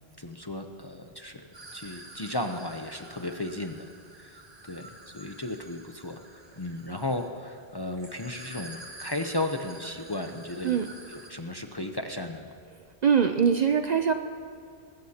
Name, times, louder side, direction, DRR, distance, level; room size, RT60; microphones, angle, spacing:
voice 1, 0.2-1.5 1.7-10.8 11.1-12.5, left 1 dB, 30° left, 5 dB, 0.5 m, -35 dB
sound 1, 1.5-11.3, right 2 dB, 25° right, 1.1 m, -48 dB
voice 2, 13.0-14.1, right 7 dB, 55° right, 7 dB, 0.5 m, -22 dB
20.5 x 16.0 x 2.8 m, 2.3 s
omnidirectional pair, 1.1 m